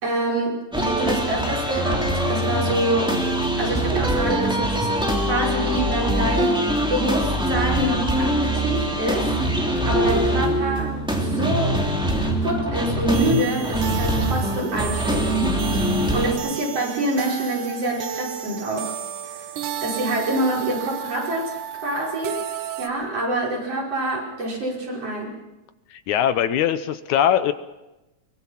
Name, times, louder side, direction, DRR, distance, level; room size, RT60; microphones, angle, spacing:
voice 1, 0.0-3.1 3.6-4.9 5.2-6.6 6.9-9.3 9.8-11.8 12.2-15.3 16.1-19.0 19.3-19.4 19.8-21.6 21.8-22.4 22.8-25.3, right 1 dB, 50° right, -3 dB, 6.5 m, -26 dB
sound 1, 0.7-16.3, right 1 dB, ahead, 2.9 m, -23 dB
sound 2, 13.1-22.9, right 9 dB, 80° right, 2.6 m, -32 dB
voice 2, 25.9-27.5, left 10 dB, 75° left, 11 dB, 2.2 m, -21 dB
23.5 x 22.5 x 5.8 m, 1.0 s
omnidirectional pair, 3.5 m